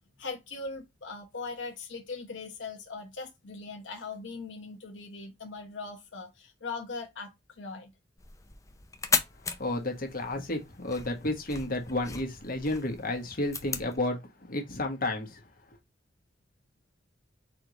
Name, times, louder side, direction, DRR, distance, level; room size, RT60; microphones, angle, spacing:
voice 1, 0.2-7.9, left 4 dB, 90° left, 1.0 m, -40 dB
sound 1, 8.2-14.0, left 5 dB, 15° left, 0.5 m, -36 dB
voice 2, 9.6-14.2 14.5-15.4, left 2 dB, 50° left, 1.2 m, -31 dB
4.2 x 3.2 x 3.8 m
head